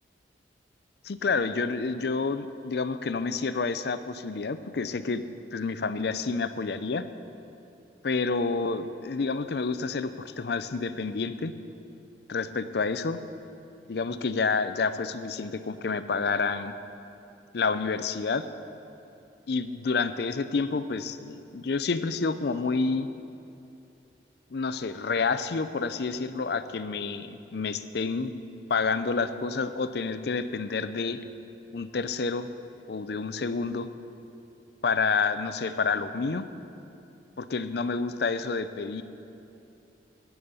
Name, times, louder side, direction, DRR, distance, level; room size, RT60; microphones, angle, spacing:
voice 1, 1.0-5.2 5.5-7.1 8.0-11.5 12.3-13.2 13.9-16.7 17.5-18.5 19.5-23.1 24.5-28.3 28.7-31.2 31.7-32.5 32.9-33.9 34.8-36.5 37.4-39.0, left 4 dB, 60° left, 12 dB, 0.5 m, -29 dB
10.5 x 7.1 x 8.8 m, 2.7 s
head